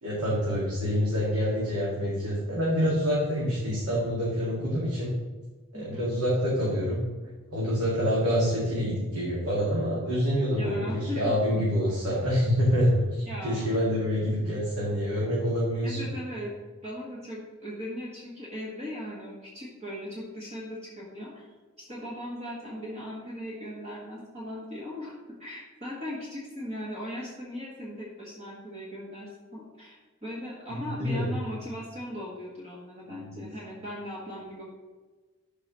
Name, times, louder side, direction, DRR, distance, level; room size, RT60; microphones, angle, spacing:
voice 1, 0.0-5.1 5.7-7.0 7.5-13.0 13.4-16.0 30.7-31.3 33.1-33.5, equal, 90° right, -6 dB, 1.9 m, -26 dB
voice 2, 5.7-6.0 10.5-11.3 13.2-13.8 15.8-16.5 16.8-21.5 21.9-25.1 25.4-34.6, left 1 dB, 30° right, -5 dB, 1.5 m, -38 dB
12.5 x 4.9 x 3.0 m, 1.3 s
head